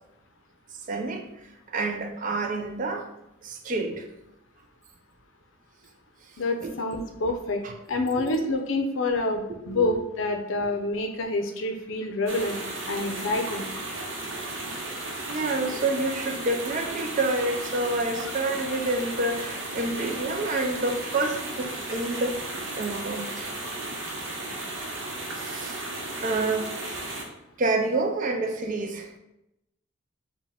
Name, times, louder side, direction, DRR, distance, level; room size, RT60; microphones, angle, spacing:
voice 1, 0.9-1.3 1.7-3.1 3.4-4.1 6.6-6.7 7.6-7.7 8.2-8.4 9.7-10.0 15.3-22.4 22.7-23.5 25.4-25.8 26.2-26.8 27.6-29.1, right 2 dB, 40° right, 5 dB, 0.4 m, -28 dB
voice 2, 6.4-7.6 7.9-12.6 12.9-13.6, left 2 dB, 70° left, 5 dB, 0.5 m, -27 dB
sound 1, 12.3-27.2, right 2 dB, 70° right, 0.8 m, -35 dB
4.5 x 2.2 x 3.4 m, 0.86 s
head